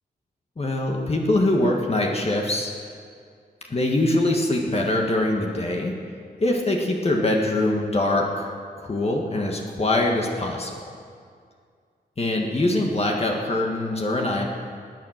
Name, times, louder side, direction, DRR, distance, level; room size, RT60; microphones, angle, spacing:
voice 1, 0.6-2.7 3.7-5.9 6.4-8.5 8.8-10.7 12.2-14.5, left 1 dB, 40° left, 0 dB, 1.7 m, -23 dB
18.5 x 9.1 x 6.6 m, 2.2 s
wide cardioid pair, 90°, 17 cm